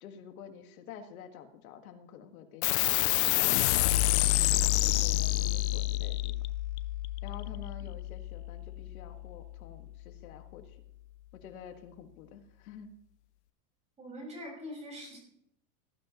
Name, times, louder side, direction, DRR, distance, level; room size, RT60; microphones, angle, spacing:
voice 1, 0.0-2.8 3.4-6.3 7.2-10.8 11.3-12.9, left 8 dB, 75° left, 6 dB, 2.0 m, -49 dB
sound 1, 2.6-9.5, left 16 dB, 50° left, 0.6 m, -28 dB
voice 2, 14.0-15.2, equal, 15° right, -1 dB, 5.7 m, -43 dB
19.0 x 12.0 x 3.1 m, 0.78 s
supercardioid pair, 160°, 43 cm